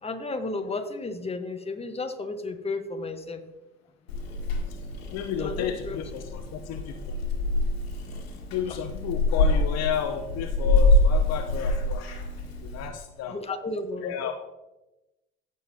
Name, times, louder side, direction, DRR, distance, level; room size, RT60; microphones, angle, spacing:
voice 1, 0.0-3.4 5.4-6.0 8.7-8.8 13.3-14.1, left 3 dB, 20° left, 7 dB, 1.3 m, -33 dB
Purr / Meow, 4.1-12.9, left 2 dB, 85° left, 1.7 m, -26 dB
voice 2, 5.1-7.2 8.5-12.0 12.6-13.4 14.0-14.3, left 8 dB, 55° left, 7 dB, 0.8 m, -32 dB
15.5 x 6.6 x 2.9 m, 1.0 s
hypercardioid pair, 65°, 30 cm